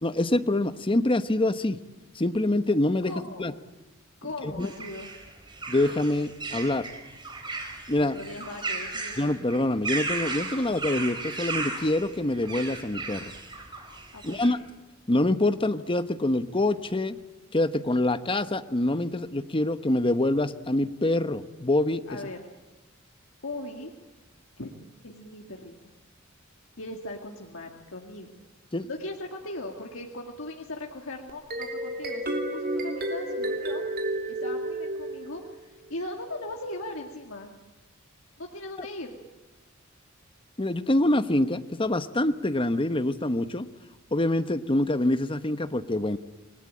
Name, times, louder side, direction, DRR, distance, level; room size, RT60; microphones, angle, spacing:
voice 1, 0.0-1.8 2.1-3.1 3.4-3.5 4.4-4.7 5.7-6.9 7.9-8.2 9.2-13.3 14.2-14.6 15.1-17.2 17.5-22.2 28.7-28.9 40.6-43.7 44.1-46.2, left 1 dB, 25° left, 11 dB, 1.0 m, -25 dB
voice 2, 3.0-3.5 4.2-5.1 8.0-9.2 14.1-14.6 22.1-22.4 23.4-23.9 24.6-24.7 25.0-25.9 26.8-28.3 28.9-33.8 34.3-37.5 38.4-39.2, left 2 dB, 75° left, 1 dB, 2.2 m, -39 dB
sound 1, 4.6-14.5, right 3 dB, 20° right, 4.7 m, -35 dB
sound 2, 31.3-35.6, right 1 dB, 50° right, 2.9 m, -31 dB
28.0 x 20.0 x 8.9 m, 1.1 s
head